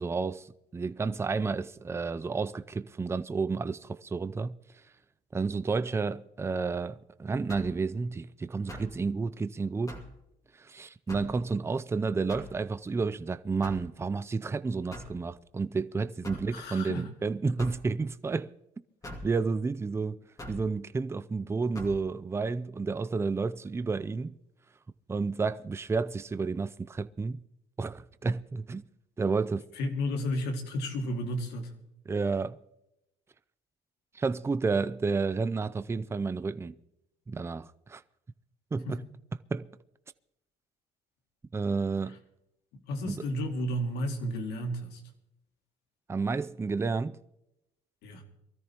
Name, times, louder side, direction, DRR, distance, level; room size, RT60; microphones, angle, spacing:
voice 1, 0.0-4.6 5.3-10.0 10.6-18.5 19.2-20.2 20.5-24.3 25.1-27.4 27.8-28.8 29.2-29.7 32.1-32.6 34.1-36.8 37.3-38.0 38.7-39.0 39.5-39.7 41.5-42.2 43.0-43.2 46.1-47.2, right 4 dB, 15° right, 0.4 m, -31 dB
sound 1, 7.5-7.8 8.7-9.0 9.9-10.2 11.1-11.4 12.3-12.6 13.6-13.9 14.9-15.2 16.2-16.5 17.6-17.8 19.0-19.3 20.4-20.7 21.7-22.0, left 1 dB, 20° left, 2.4 m, -42 dB
voice 2, 16.5-17.1 29.8-31.7 38.9-39.0 42.9-45.0 48.0-48.2, equal, 85° left, 2.4 m, -32 dB
23.5 x 13.5 x 3.0 m
cardioid pair, 110°, 17 cm